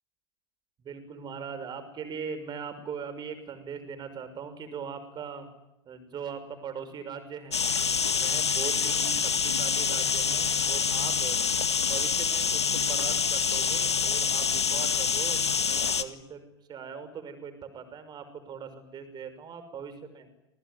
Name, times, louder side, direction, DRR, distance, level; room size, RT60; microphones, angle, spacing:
voice 1, 0.8-5.5 5.9-7.7 8.1-11.4 11.8-15.4 15.7-20.3, right 6 dB, 30° right, 10 dB, 5.9 m, -40 dB
sound 1, 7.5-16.0, left 6 dB, 80° left, 1.9 m, -26 dB
28.0 x 20.5 x 9.6 m, 0.89 s
figure-of-eight pair, 90°, 14 cm